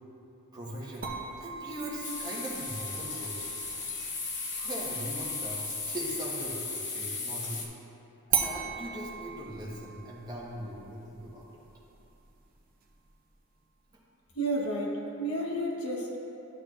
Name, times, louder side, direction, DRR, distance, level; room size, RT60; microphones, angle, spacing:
voice 1, 0.5-1.1 1.4-3.7 4.6-7.7 8.3-11.6, right 1 dB, 20° right, -5 dB, 1.1 m, -40 dB
sound 1, 1.0-6.6 8.3-13.3, right 8 dB, 40° right, 0.6 m, -39 dB
sound 2, 2.0-7.7, left 3 dB, 50° left, 0.9 m, -36 dB
voice 2, 14.3-16.2, right 1 dB, 80° left, -1 dB, 1.1 m, -31 dB
11.5 x 6.5 x 2.5 m, 2.9 s
head